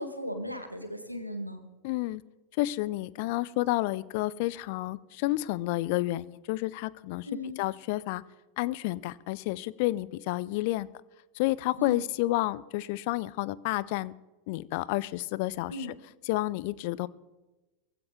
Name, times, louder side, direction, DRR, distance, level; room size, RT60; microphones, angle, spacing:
voice 1, 0.0-1.6 7.2-7.6 11.8-12.0 15.7-15.9, left 1 dB, 90° right, 7 dB, 1.6 m, -36 dB
voice 2, 1.8-2.2 2.6-7.3 7.6-8.2 8.6-10.9 11.3-14.1 14.5-15.9 16.3-17.1, left 18 dB, 50° left, 21 dB, 0.5 m, -30 dB
18.0 x 15.5 x 3.7 m, 1.1 s
figure-of-eight pair, 90°, 0 cm